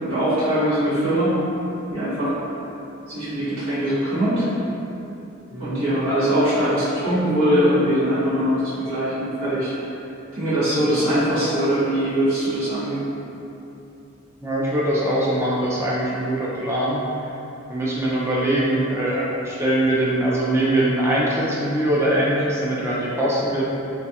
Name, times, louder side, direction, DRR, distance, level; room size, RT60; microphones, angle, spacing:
voice 1, 0.0-1.3 1.9-2.4 3.1-4.5 5.6-9.7 10.3-13.1, equal, 85° right, -13 dB, 1.5 m, -21 dB
voice 2, 5.5-5.9 10.9-11.1 14.4-17.3 17.7-23.6, right 1 dB, 10° right, -6 dB, 0.4 m, -22 dB
3.1 x 2.3 x 2.7 m, 2.9 s
head